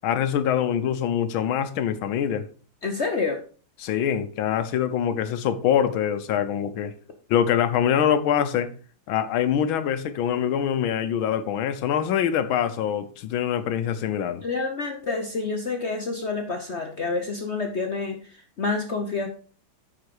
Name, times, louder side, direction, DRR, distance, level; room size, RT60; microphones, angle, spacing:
voice 1, 0.0-2.5 3.8-6.9 7.3-8.7 9.1-14.4, left 9 dB, 75° left, 1.6 m, -24 dB
voice 2, 2.8-3.4 14.4-19.3, left 4 dB, 60° left, 0.7 m, -28 dB
9.8 x 5.1 x 4.6 m
omnidirectional pair, 2.3 m